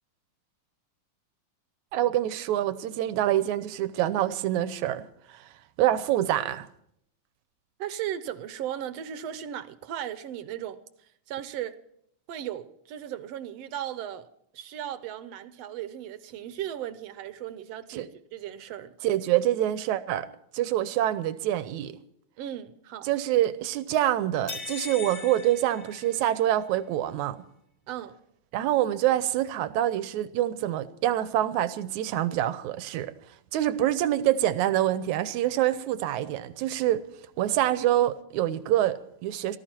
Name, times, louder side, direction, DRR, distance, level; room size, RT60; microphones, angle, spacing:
voice 1, 1.9-5.5 5.8-6.7 17.9-18.1 19.0-20.3 20.5-22.0 23.0-27.4 28.5-33.1 33.5-37.0 37.4-39.6, right 13 dB, 90° right, 2.2 m, -26 dB
voice 2, 7.8-11.8 12.3-14.3 14.5-19.0 22.4-23.1 27.9-28.2, right 11 dB, 70° right, 1.8 m, -36 dB
sound 1, 24.5-26.6, left 5 dB, 45° left, 1.4 m, -39 dB
18.5 x 13.5 x 4.4 m
omnidirectional pair, 3.3 m